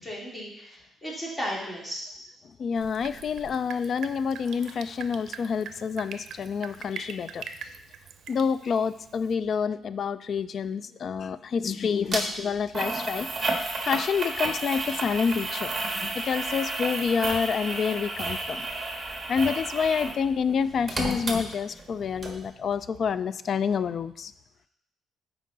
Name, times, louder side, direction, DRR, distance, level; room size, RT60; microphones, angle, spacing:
voice 1, 0.0-2.0 19.1-19.3, equal, 15° left, -4 dB, 2.8 m, -35 dB
voice 2, 2.6-7.4 8.3-13.3 13.9-18.7 19.3-24.3, left 6 dB, 55° left, 15 dB, 0.3 m, -28 dB
Drip, 2.8-9.3, right 7 dB, 70° right, 0.6 m, -43 dB
sound 1, 12.1-12.2 12.7-20.2 20.5-21.9 22.2-22.3, right 2 dB, 25° right, 1.5 m, -31 dB
9.0 x 4.7 x 3.9 m, 0.75 s
cardioid pair, 90°, 0 cm